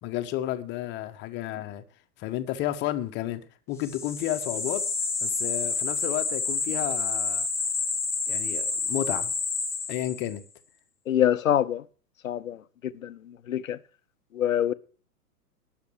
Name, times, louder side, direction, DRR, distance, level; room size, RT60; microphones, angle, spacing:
voice 1, 0.0-1.8 2.2-3.4 3.7-4.9 5.2-7.5 8.3-9.3 9.9-10.4, left 13 dB, 25° left, 1.2 m, -31 dB
sound 1, 3.8-10.4, left 4 dB, 5° left, 1.4 m, -29 dB
voice 2, 11.1-11.8 12.2-13.8 14.3-14.7, left 10 dB, 55° left, 0.9 m, -26 dB
19.0 x 6.9 x 4.7 m
figure-of-eight pair, 110°, 47 cm